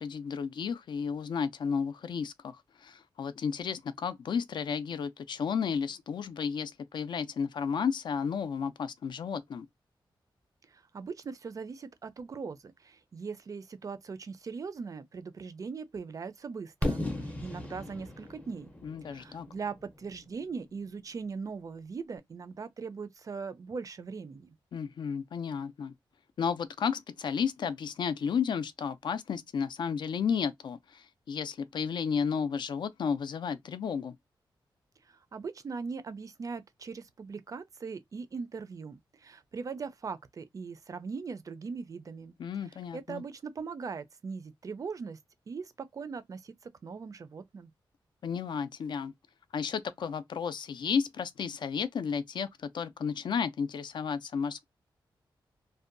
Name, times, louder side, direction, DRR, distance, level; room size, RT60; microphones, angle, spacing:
voice 1, 0.0-9.7 18.8-19.5 24.7-25.9 26.4-34.1 42.4-43.2 48.2-49.1 49.5-54.6, left 6 dB, 60° left, 0.4 m, -33 dB
voice 2, 10.7-18.7 19.0-24.6 35.1-42.3 42.9-45.2 45.5-46.5 46.8-47.7, right 5 dB, 40° right, 0.4 m, -40 dB
Fireworks, 16.8-20.7, left 1 dB, 15° left, 0.6 m, -36 dB
2.6 x 2.2 x 2.5 m
wide cardioid pair, 135°, 9 cm